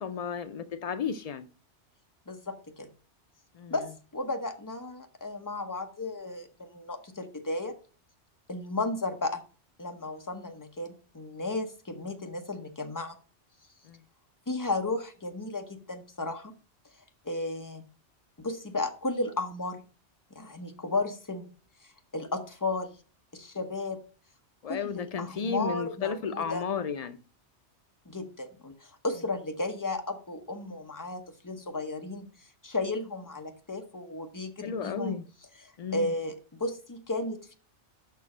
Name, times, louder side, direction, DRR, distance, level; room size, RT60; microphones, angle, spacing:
voice 1, 0.0-1.5 3.5-3.7 13.8-14.0 24.6-27.2 34.6-35.2 35.8-36.1, left 6 dB, 75° left, 0.3 m, -33 dB
voice 2, 2.3-2.9 3.7-7.7 8.5-9.4 9.8-13.2 14.5-16.5 17.2-17.8 18.4-19.8 20.3-21.5 22.1-22.9 23.3-24.0 24.7-26.6 28.1-32.3 32.6-35.2 35.6-37.5, left 2 dB, 20° left, 0.8 m, -34 dB
6.0 x 4.6 x 6.0 m
omnidirectional pair, 1.2 m